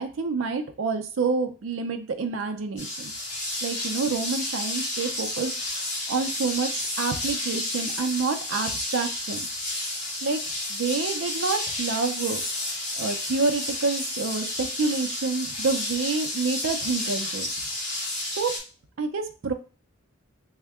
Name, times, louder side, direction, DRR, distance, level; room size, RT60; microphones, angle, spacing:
voice 1, 0.0-3.1 3.6-5.5 6.1-9.4 10.2-10.4 10.7-12.4 13.0-17.5 18.4-18.5 19.0-19.5, right 4 dB, 70° right, 6 dB, 0.4 m, -28 dB
sound 1, 2.8-18.6, left 2 dB, 35° left, 1.2 m, -31 dB
3.5 x 2.1 x 3.4 m, 0.36 s
head